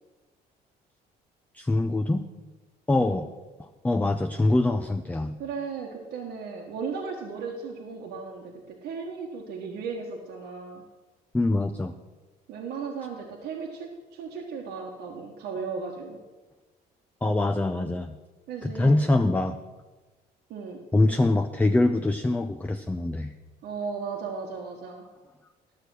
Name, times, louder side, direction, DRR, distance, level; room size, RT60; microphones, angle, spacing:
voice 1, 1.5-2.2 2.9-3.3 3.6-5.4 11.3-11.9 17.2-18.1 18.6-19.6 20.9-23.3, left 2 dB, 10° left, 7 dB, 0.4 m, -24 dB
voice 2, 5.4-10.8 12.5-16.2 18.5-19.0 20.5-20.8 23.6-25.0, right 5 dB, 75° right, 0 dB, 1.3 m, -36 dB
11.5 x 6.7 x 6.3 m, 1.2 s
cardioid pair, 110°, 17 cm